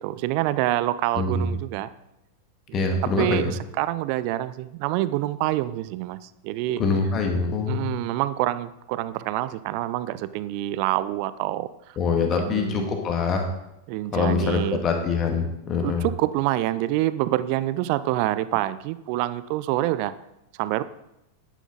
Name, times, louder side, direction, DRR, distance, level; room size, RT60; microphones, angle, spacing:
voice 1, 0.0-1.9 3.0-6.8 7.7-12.9 13.9-14.8 15.8-20.1 20.6-20.8, right 15 dB, 45° right, 16 dB, 0.5 m, -26 dB
voice 2, 1.2-1.5 2.7-3.4 6.8-7.8 12.0-13.4 14.1-16.1, left 4 dB, 30° left, 3 dB, 2.0 m, -24 dB
11.0 x 9.1 x 4.0 m, 0.87 s
figure-of-eight pair, 90°, 0 cm